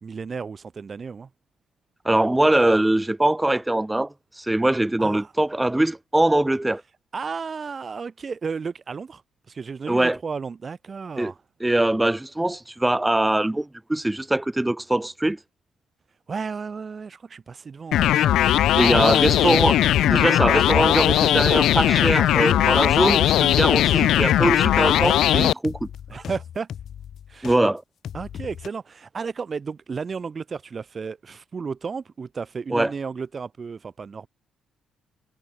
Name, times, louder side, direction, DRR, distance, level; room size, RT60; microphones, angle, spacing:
voice 1, 0.0-1.3 5.0-5.3 7.1-9.2 9.5-11.4 16.3-18.5 19.1-19.5 26.1-26.7 27.3-27.6 28.1-34.3, right 5 dB, 40° right, 1.0 m, -33 dB
voice 2, 2.0-6.8 9.9-10.2 11.2-11.3 11.6-15.4 18.7-25.9 27.4-27.8 32.7-32.9, right 1 dB, 10° right, 0.7 m, -22 dB
sound 1, 17.9-25.5, left 12 dB, 80° left, 0.4 m, -19 dB
sound 2, 23.7-27.6 28.0-28.7, left 9 dB, 60° left, 2.0 m, -38 dB
cardioid pair, 90°, 0 cm